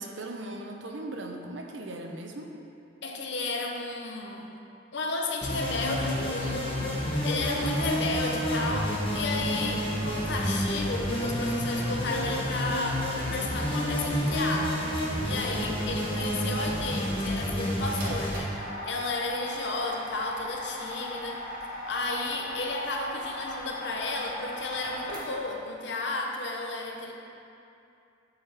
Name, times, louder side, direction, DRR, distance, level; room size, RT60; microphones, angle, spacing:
voice 1, 0.0-2.5 15.2-15.8, right 1 dB, 75° right, 3 dB, 0.7 m, -39 dB
voice 2, 3.0-4.5 4.9-14.8 15.2-18.6 18.8-21.4 21.9-27.1, left 2 dB, 65° left, 1 dB, 0.8 m, -33 dB
sound 1, 5.4-18.4, equal, 30° left, 1.1 m, -29 dB
sound 2, 18.0-25.6, left 1 dB, 50° right, 1.7 m, -38 dB
10.0 x 4.9 x 3.5 m, 2.6 s
head